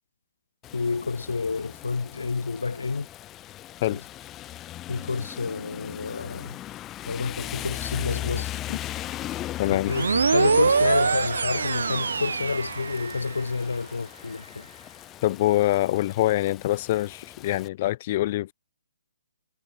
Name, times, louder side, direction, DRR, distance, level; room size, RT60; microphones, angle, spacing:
Rain, 0.6-17.7, left 14 dB, 20° left, 4.4 m, -38 dB
voice 1, 0.7-3.1 3.9-4.0 4.9-6.6 7.1-8.6 9.7-14.7, left 4 dB, 80° left, 5.5 m, -29 dB
voice 2, 9.6-9.9 15.2-18.5, left 15 dB, 35° left, 5.1 m, -24 dB
sound 1, 9.9-13.4, right 5 dB, 70° right, 2.0 m, -24 dB
hypercardioid pair, 145°, 0 cm